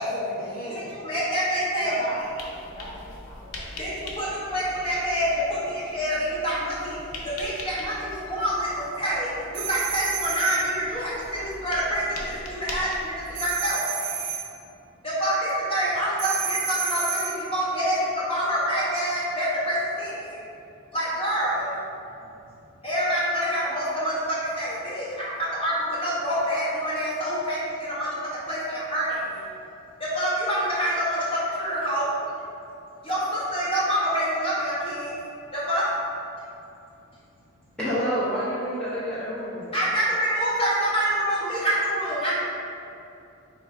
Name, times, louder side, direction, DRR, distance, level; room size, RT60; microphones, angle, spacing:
voice 1, 0.0-1.0 1.8-4.3 7.0-7.1, equal, 40° left, -8 dB, 0.6 m, -39 dB
voice 2, 0.7-1.9 3.8-7.0 7.4-8.7 9.0-13.9 15.0-20.4 20.9-21.8 22.8-28.1 28.5-29.4 30.1-31.2 31.6-32.1 33.0-35.1 35.5-35.9 39.7-42.3, equal, 25° left, -9 dB, 1.1 m, -26 dB
sound 1, 2.2-13.4, left 2 dB, 90° left, 0.6 m, -42 dB
sound 2, 9.5-10.7 13.3-14.5 16.2-17.4, right 8 dB, 50° right, 0.3 m, -30 dB
voice 3, 37.8-39.7, equal, 5° left, -11 dB, 0.7 m, -28 dB
3.5 x 2.7 x 4.4 m, 2.7 s
head